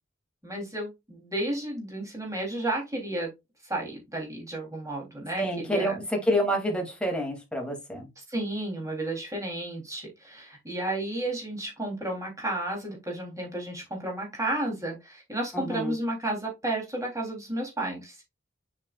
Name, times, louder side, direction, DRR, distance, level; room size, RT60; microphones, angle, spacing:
voice 1, 0.4-3.3 3.6-6.0 8.2-18.2, right 1 dB, 15° right, -1 dB, 3.4 m, -32 dB
voice 2, 5.4-8.1 15.5-15.9, equal, 5° left, 1 dB, 2.7 m, -28 dB
7.5 x 6.4 x 2.5 m, 0.22 s
head